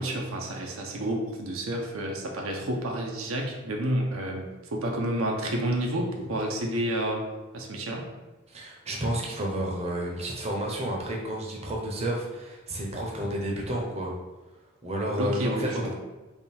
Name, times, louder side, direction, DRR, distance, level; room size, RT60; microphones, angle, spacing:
voice 1, 0.0-4.4 4.7-7.2 7.5-8.0 15.2-15.9, right 1 dB, 80° right, 1 dB, 0.6 m, -30 dB
voice 2, 8.5-14.1 14.8-15.9, right 1 dB, 30° right, -2 dB, 0.7 m, -31 dB
3.5 x 2.3 x 4.2 m, 1.1 s
head